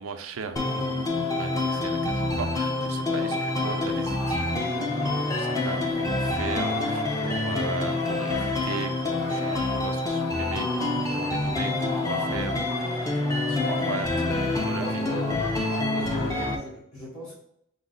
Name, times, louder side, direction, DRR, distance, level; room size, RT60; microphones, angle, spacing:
voice 1, 0.0-12.6 13.5-15.0, right 5 dB, 75° right, 8 dB, 0.5 m, -38 dB
sound 1, 0.6-16.6, left 2 dB, 15° left, 0.5 m, -27 dB
sound 2, 3.6-16.6, equal, 30° left, 1.1 m, -38 dB
voice 2, 11.4-12.4 14.2-15.5 15.8-17.3, left 1 dB, 75° left, -8 dB, 1.4 m, -38 dB
6.1 x 2.0 x 3.8 m, 0.73 s
head